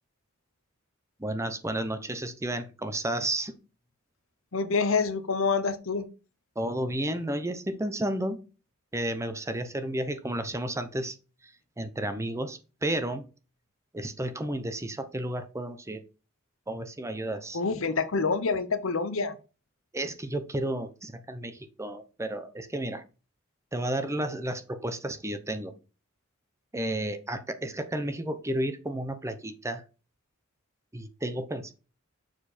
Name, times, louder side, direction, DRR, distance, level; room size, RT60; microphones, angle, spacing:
voice 1, 1.2-3.6 6.6-8.4 8.9-11.1 11.4-13.2 13.9-16.0 16.7-17.6 19.9-23.0 23.7-25.7 26.7-29.8 30.9-31.7, right 1 dB, 15° right, 0.8 m, -32 dB
voice 2, 4.5-6.1 17.5-19.4, left 4 dB, 70° left, 0.9 m, -27 dB
7.1 x 4.6 x 4.3 m
head